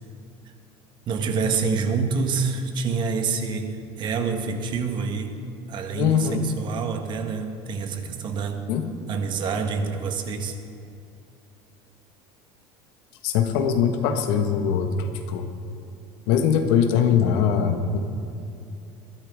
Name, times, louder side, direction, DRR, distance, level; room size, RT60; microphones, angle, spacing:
voice 1, 1.1-5.4 5.7-8.6 9.1-10.6, right 5 dB, 40° right, 6 dB, 1.3 m, -27 dB
voice 2, 5.9-6.4 8.7-8.9 13.2-15.5 16.3-18.0, left 7 dB, 75° left, 5 dB, 1.6 m, -22 dB
22.0 x 13.0 x 3.7 m, 2.7 s
cardioid pair, 145°, 12 cm